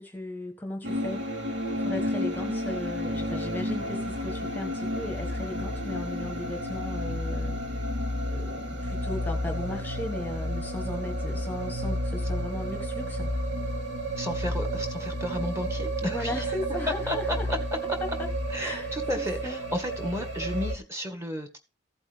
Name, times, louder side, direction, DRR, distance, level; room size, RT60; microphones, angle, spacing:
voice 1, 0.0-7.6 8.3-13.3 16.0-17.5 18.2-18.3 18.6-19.6, left 1 dB, 10° left, 1.1 m, -36 dB
sound 1, 0.8-20.8, equal, 80° right, 2.0 m, -31 dB
voice 2, 14.1-16.4 16.9-17.6 18.5-21.6, left 1 dB, 15° right, 1.7 m, -32 dB
15.0 x 8.1 x 3.5 m
head